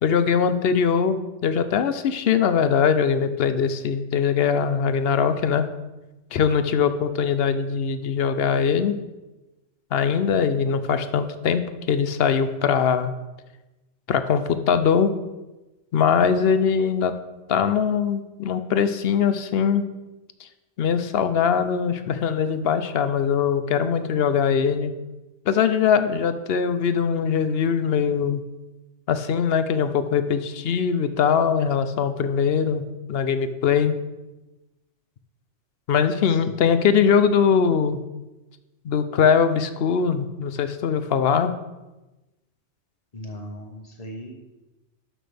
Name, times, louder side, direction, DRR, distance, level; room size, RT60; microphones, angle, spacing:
voice 1, 0.0-5.7 6.3-8.9 9.9-11.6 11.9-13.1 14.1-15.1 15.9-17.1 17.5-19.8 20.8-24.9 25.5-28.4 29.1-32.8 33.1-33.9 35.9-38.0 38.8-41.5, left 7 dB, 65° left, 11 dB, 0.8 m, -21 dB
voice 2, 43.1-44.3, equal, 35° left, 1 dB, 1.4 m, -38 dB
12.5 x 6.0 x 3.4 m, 1.1 s
omnidirectional pair, 1.2 m